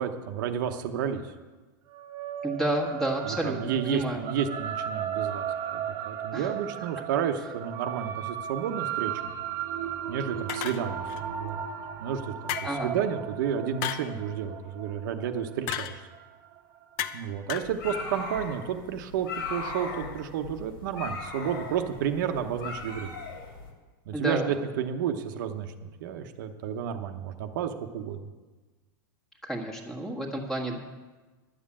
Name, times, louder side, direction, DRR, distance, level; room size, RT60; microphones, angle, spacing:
voice 1, 0.0-1.3 3.2-5.5 5.7-9.3 10.1-11.6 12.0-12.6 12.8-16.0 17.1-23.2 24.1-28.3 30.7-30.8, right 8 dB, 65° right, 6 dB, 1.0 m, -31 dB
sound 1, 1.9-16.6, right 9 dB, 30° right, 1.2 m, -36 dB
voice 2, 2.4-4.2 6.3-6.5 12.6-12.9 24.1-24.5 29.4-30.8, right 1 dB, 5° left, -1 dB, 1.6 m, -31 dB
sound 2, 10.5-11.2 12.5-12.9 13.8-14.1 15.7-16.0 17.0-17.2 17.5-17.8, left 10 dB, 45° left, 0.8 m, -33 dB
sound 3, 17.6-23.7, left 3 dB, 75° left, 2.7 m, -38 dB
11.0 x 7.6 x 8.6 m, 1.3 s
supercardioid pair, 155°, 11 cm